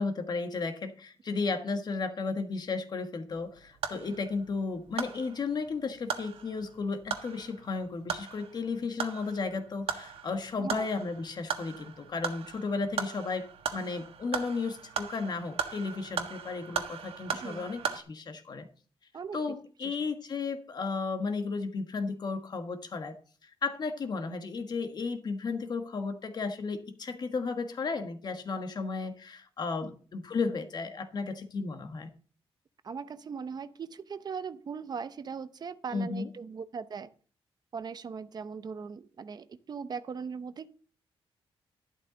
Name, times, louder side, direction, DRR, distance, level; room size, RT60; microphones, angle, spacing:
voice 1, 0.0-18.7 19.3-23.1 23.4-32.1 35.9-36.3, left 4 dB, 45° left, 8 dB, 1.5 m, -34 dB
sound 1, 3.3-18.0, right 7 dB, 80° right, 1.6 m, -39 dB
voice 2, 32.8-37.1 37.7-40.7, right 6 dB, 45° right, 13 dB, 0.7 m, -39 dB
11.5 x 11.5 x 3.9 m, 0.40 s
wide cardioid pair, 150°, 10 cm